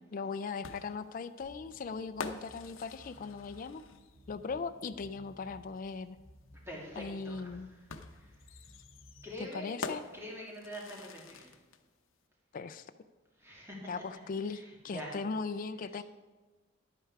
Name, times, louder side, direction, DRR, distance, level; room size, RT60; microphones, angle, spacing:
voice 1, 0.1-3.8 4.3-6.2 7.0-7.7 9.5-10.0 12.5-12.9 13.9-16.0, left 4 dB, 45° left, 10 dB, 0.4 m, -38 dB
sound 1, 0.6-4.3 5.8-5.9 7.9-11.8, left 4 dB, 80° left, 0.7 m, -45 dB
sound 2, 1.4-9.4, equal, 45° right, 2.9 m, -58 dB
voice 2, 6.6-8.6 9.2-9.8 10.1-11.6 13.3-15.2 15.8-16.0, equal, 15° right, -3 dB, 2.4 m, -46 dB
10.5 x 9.0 x 4.7 m, 1.3 s
head